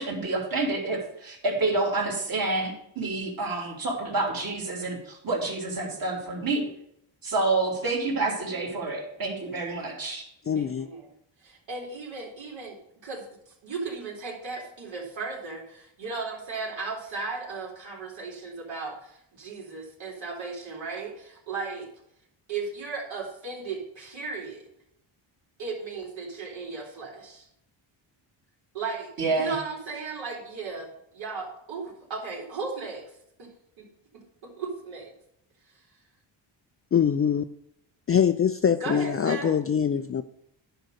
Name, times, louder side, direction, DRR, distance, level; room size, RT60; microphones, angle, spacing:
voice 1, 0.0-6.7 7.2-10.2 29.2-29.5, right 3 dB, 45° right, -1 dB, 3.3 m, -28 dB
voice 2, 9.2-9.8 10.5-11.0 11.4-12.8 13.0-13.2 13.6-21.9 22.5-24.6 25.6-27.5 28.7-30.9 31.1-33.0 33.4-33.5 33.8-33.9 34.4-35.1 38.8-39.6, right 4 dB, 70° right, -2 dB, 3.9 m, -36 dB
voice 3, 10.5-10.9 36.9-37.4 38.1-40.2, left 8 dB, 30° left, 10 dB, 0.4 m, -23 dB
10.5 x 5.1 x 6.6 m, 0.75 s
cardioid pair, 105°, 48 cm